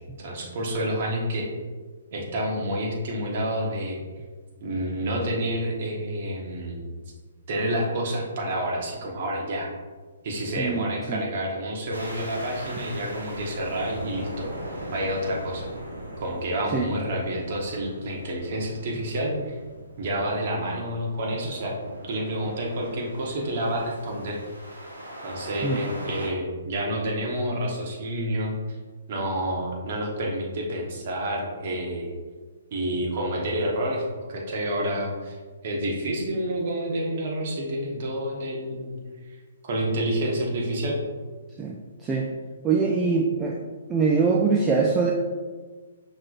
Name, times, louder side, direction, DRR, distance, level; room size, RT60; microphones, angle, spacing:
voice 1, 0.2-1.5 2.1-4.0 4.6-6.9 7.5-9.7 10.2-14.5 14.9-15.7 16.2-19.6 20.0-21.7 22.0-24.4 25.2-28.8 29.1-32.1 32.7-35.4 35.6-39.0 39.6-41.0, right 1 dB, 50° right, -1 dB, 1.1 m, -29 dB
voice 2, 10.6-11.2 16.7-16.9 25.6-25.8 41.6-41.8 42.0-42.3 42.6-43.6 43.9-45.1, right 4 dB, 15° right, -1 dB, 0.4 m, -23 dB
sound 1, 11.9-26.3, right 1 dB, 85° right, 1.2 m, -40 dB
5.8 x 3.2 x 2.5 m, 1.4 s
hypercardioid pair, 135°, 0 cm